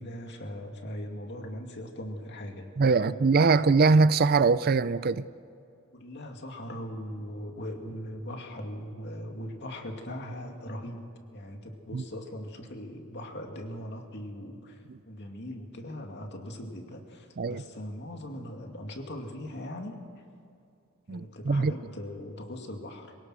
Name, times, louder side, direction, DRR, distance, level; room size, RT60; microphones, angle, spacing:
voice 1, 0.0-2.7 3.0-3.2 5.9-11.0 11.3-20.2 21.1-23.2, equal, 50° left, 2.4 m, -40 dB
voice 2, 2.8-5.2 11.9-12.0 17.4-17.6 21.1-21.7, right 4 dB, 45° right, 0.4 m, -22 dB
25.5 x 18.0 x 6.3 m
head